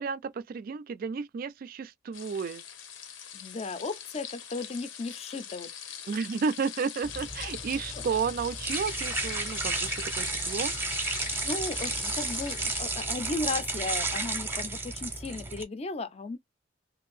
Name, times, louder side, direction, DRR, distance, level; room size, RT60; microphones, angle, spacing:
voice 1, 0.0-2.6 6.1-10.7, right 5 dB, 50° right, 0.3 m, -32 dB
sound 1, 2.1-12.8, left 8 dB, 80° left, 0.8 m, -41 dB
voice 2, 3.3-5.7 6.1-6.2 11.4-16.4, left 3 dB, 35° left, 0.5 m, -35 dB
sound 2, 7.0-15.6, right 3 dB, 10° right, 0.6 m, -33 dB
2.7 x 2.5 x 3.0 m
head